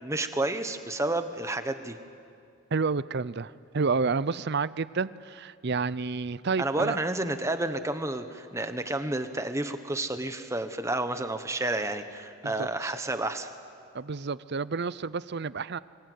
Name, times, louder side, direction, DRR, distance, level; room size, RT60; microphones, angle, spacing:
voice 1, 0.0-2.0 6.6-13.5, right 2 dB, 15° right, 8 dB, 1.2 m, -30 dB
voice 2, 2.7-7.0 12.4-12.7 13.9-15.8, right 4 dB, 50° right, 18 dB, 0.6 m, -30 dB
25.0 x 22.0 x 9.5 m, 2.4 s
head